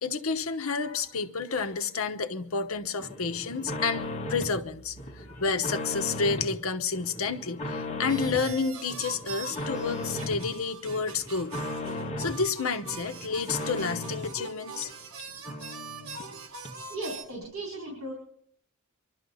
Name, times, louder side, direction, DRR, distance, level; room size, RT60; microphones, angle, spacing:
voice 1, 0.0-11.6 12.2-14.9, left 4 dB, 75° left, 1.0 m, -30 dB
sound 1, 3.0-4.6 5.0-6.6 6.9-8.5 8.9-10.5 10.9-12.4 12.8-14.4 14.8-14.9 15.2-15.3 15.5-16.3 16.6-16.7, left 2 dB, 30° left, 1.7 m, -36 dB
sound 2, 8.1-17.2, right 4 dB, 85° right, 1.4 m, -42 dB
voice 2, 16.9-18.1, right 2 dB, 70° right, 4.3 m, -36 dB
24.0 x 12.5 x 4.1 m
head